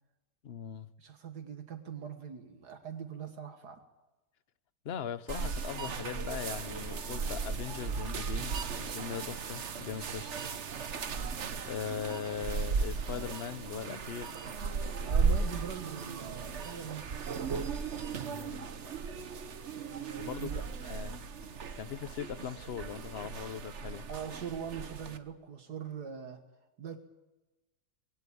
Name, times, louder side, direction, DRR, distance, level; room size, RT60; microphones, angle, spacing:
voice 1, 0.4-0.9 4.8-10.4 11.6-14.3 18.3-18.7 20.2-20.5 20.8-21.2 21.8-24.0, left 8 dB, 45° left, 15 dB, 0.9 m, -40 dB
voice 2, 1.0-3.8 15.0-17.4 19.8-20.7 24.1-26.4 26.8-27.0, right 7 dB, 70° right, 6 dB, 2.0 m, -42 dB
sound 1, 5.3-25.2, right 5 dB, 45° right, 1.3 m, -36 dB
21.0 x 17.5 x 8.6 m, 1.1 s
omnidirectional pair, 1.8 m